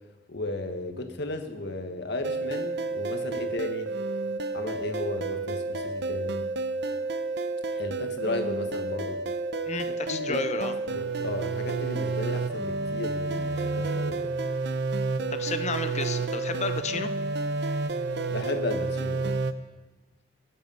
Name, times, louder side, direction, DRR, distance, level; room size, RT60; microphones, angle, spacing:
voice 1, 0.3-3.9 4.5-6.4 7.7-9.2 10.1-14.2 18.3-19.3, left 2 dB, 65° left, 6 dB, 1.5 m, -34 dB
sound 1, 2.2-19.5, right 3 dB, 65° right, 0.7 m, -30 dB
voice 2, 9.7-10.8 15.3-17.1, left 4 dB, 40° left, 9 dB, 0.9 m, -32 dB
23.0 x 8.4 x 5.5 m, 1.2 s
head